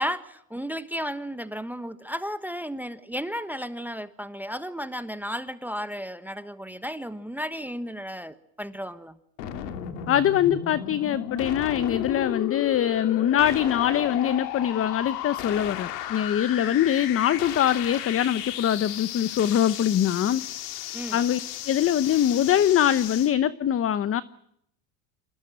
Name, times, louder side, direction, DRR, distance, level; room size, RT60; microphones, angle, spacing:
voice 1, 0.0-9.2 20.9-21.2, equal, 5° right, 12 dB, 1.2 m, -33 dB
sound 1, 9.4-23.3, left 10 dB, 80° left, 3.2 m, -34 dB
voice 2, 10.1-20.4 21.1-21.4 21.7-24.2, left 10 dB, 30° left, 15 dB, 0.9 m, -23 dB
27.5 x 19.0 x 8.9 m, 0.74 s
supercardioid pair, 120°, 47 cm